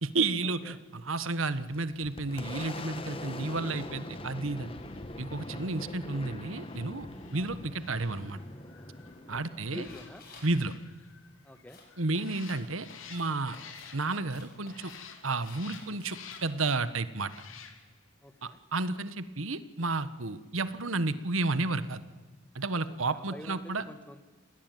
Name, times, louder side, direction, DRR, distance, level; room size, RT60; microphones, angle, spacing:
voice 1, 0.0-4.7 5.2-7.1 7.3-8.4 9.3-9.9 10.4-10.7 12.0-13.6 13.9-14.9 15.2-17.3 18.4-22.0 22.5-23.8, right 3 dB, 80° right, 13 dB, 1.4 m, -32 dB
Boom, 1.5-10.9, left 1 dB, 25° left, 1.8 m, -43 dB
sound 1, 4.7-14.4 14.7-16.7 17.2-18.1 18.4-18.6, left 7 dB, 80° left, 3.3 m, -52 dB
voice 2, 9.3-10.2 11.4-11.8 18.2-18.6 23.1-24.2, left 1 dB, 5° left, 10 dB, 1.7 m, -46 dB
sound 2, 9.8-10.5 11.7-16.7, left 3 dB, 45° left, 7.8 m, -54 dB
28.5 x 20.0 x 9.4 m, 1.3 s
head